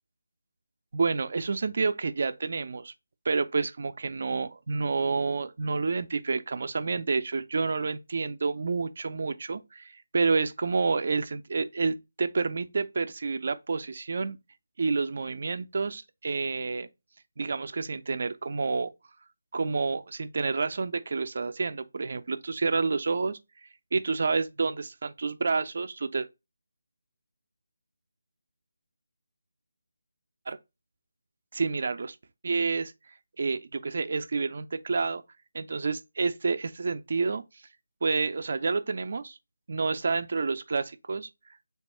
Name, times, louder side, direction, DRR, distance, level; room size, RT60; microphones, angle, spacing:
voice 1, 0.9-2.9 3.2-14.4 14.8-16.9 17.4-18.9 19.5-23.4 23.9-26.3 30.5-30.6 31.5-32.2 32.4-32.9 33.4-35.2 35.5-37.4 38.0-39.4 39.7-41.3, right 4 dB, 55° right, 0.4 m, -29 dB
3.5 x 2.2 x 4.1 m
figure-of-eight pair, 160°, 0 cm